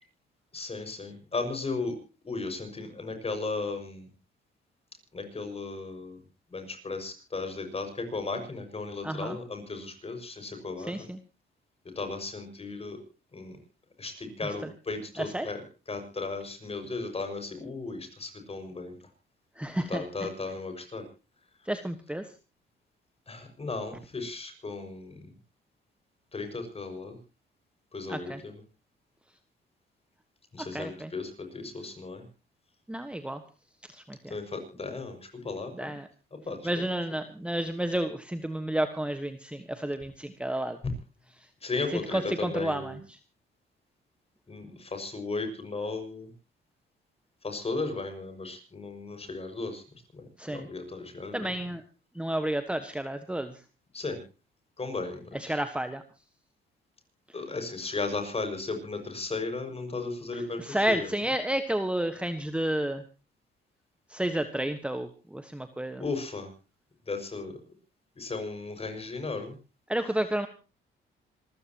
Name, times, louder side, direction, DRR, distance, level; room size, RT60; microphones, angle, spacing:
voice 1, 0.5-2.0 2.2-4.1 5.1-6.2 6.5-10.9 12.0-13.0 13.3-13.6 14.0-15.6 15.9-18.9 19.9-21.0 23.3-25.2 26.3-27.2 27.9-28.6 30.5-32.2 34.3-35.2 35.4-35.9 36.5-36.6 41.6-43.0 44.5-46.3 47.4-49.8 50.1-51.5 53.9-54.2 54.8-55.6 57.3-61.1 66.0-66.5 67.1-67.5 68.2-69.6, left 3 dB, 30° left, 7 dB, 6.2 m, -35 dB
voice 2, 9.0-9.4 10.8-11.2 14.6-14.7 15.2-15.5 19.6-20.3 21.7-22.2 28.1-28.4 30.6-31.1 32.9-33.4 33.9-34.3 35.7-36.1 36.6-40.8 41.9-43.2 50.4-50.7 51.3-51.8 52.2-53.5 55.3-56.0 60.3-63.0 64.1-66.0 69.9-70.5, right 1 dB, 5° right, 8 dB, 1.4 m, -31 dB
26.5 x 15.0 x 3.0 m, 0.34 s
cardioid pair, 90°, 20 cm